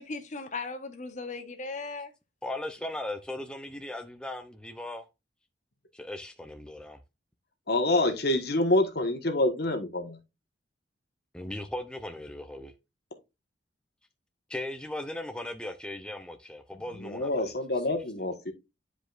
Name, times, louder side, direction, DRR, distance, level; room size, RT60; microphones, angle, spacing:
voice 1, 0.0-2.1, left 3 dB, 40° left, 1.1 m, -37 dB
voice 2, 2.4-5.1 5.9-7.0 11.3-12.7 14.5-17.5, left 1 dB, 5° left, 0.6 m, -38 dB
voice 3, 7.7-10.2 17.0-18.5, left 2 dB, 55° left, 1.3 m, -27 dB
9.9 x 5.0 x 2.4 m
head